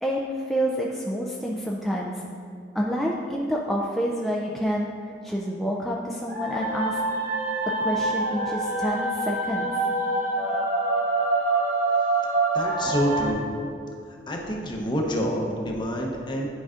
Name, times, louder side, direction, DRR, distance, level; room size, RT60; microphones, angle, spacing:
voice 1, 0.0-2.3 2.7-4.9 5.2-7.0 7.7-9.9, equal, ahead, -4 dB, 0.4 m, -28 dB
sound 1, 6.3-13.3, right 2 dB, 50° right, 1.1 m, -25 dB
voice 2, 12.5-13.4 14.1-16.5, equal, 25° left, 0 dB, 0.8 m, -27 dB
10.5 x 4.8 x 2.5 m, 2.5 s
head